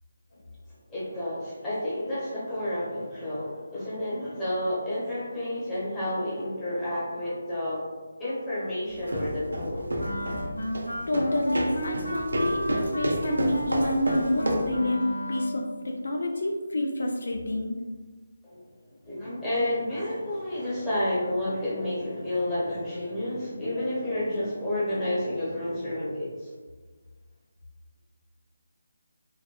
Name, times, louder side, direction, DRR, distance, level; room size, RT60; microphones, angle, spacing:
voice 1, 0.9-7.9 8.2-9.9 18.4-18.6 19.0-26.5, left 1 dB, 10° left, -11 dB, 0.9 m, -30 dB
sound 1, 8.9-14.8, equal, 75° right, 0.5 m, -31 dB
Wind instrument woodwind instrument, 10.0-15.7, equal, 85° left, 0.7 m, -33 dB
voice 2, 11.1-17.7, left 1 dB, 65° left, 1 dB, 0.3 m, -28 dB
3.3 x 2.1 x 2.2 m, 1.4 s
figure-of-eight pair, 155°, 0 cm